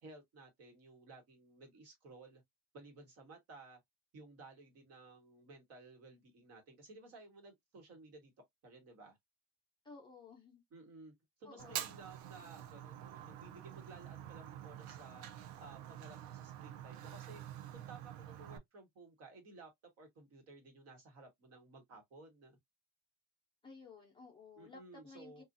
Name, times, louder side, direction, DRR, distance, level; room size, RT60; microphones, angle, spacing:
voice 1, 0.0-2.4 2.7-3.8 4.1-8.3 8.6-9.2 10.7-11.1 11.4-15.3 15.6-17.4 17.7-19.7 20.0-22.6 24.6-25.4, right 3 dB, 50° right, 1.2 m, -56 dB
voice 2, 9.8-10.6 11.4-11.9 23.6-25.4, left 4 dB, 15° left, 0.7 m, -55 dB
Fire, 11.6-18.6, right 11 dB, 85° right, 0.6 m, -47 dB
2.6 x 2.4 x 2.6 m
cardioid pair, 160°, 32 cm